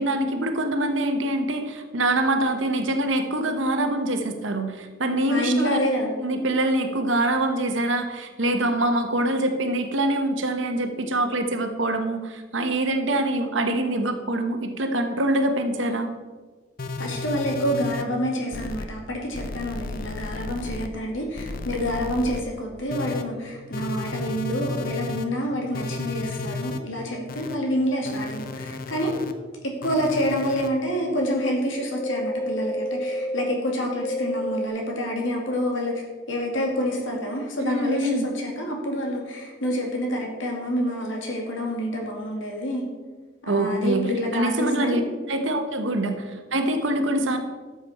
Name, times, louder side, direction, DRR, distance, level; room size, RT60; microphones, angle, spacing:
voice 1, 0.0-5.8 6.2-16.1 37.6-38.3 43.5-45.0 45.3-47.4, right 1 dB, 70° right, 6 dB, 1.2 m, -24 dB
voice 2, 5.3-6.1 17.0-29.1 29.8-35.9 36.3-42.8 43.4-45.0, equal, 75° left, 0 dB, 2.4 m, -27 dB
sound 1, 16.8-18.0 18.5-18.9 19.3-20.9 21.4-22.4 22.9-23.2 23.7-25.2 25.7-26.8 27.3-27.6 28.1-29.3 29.8-30.7 31.2-31.5 32.0-33.5 34.0-34.7, left 2 dB, 50° left, 0.7 m, -31 dB
13.0 x 7.2 x 4.3 m, 1.4 s
head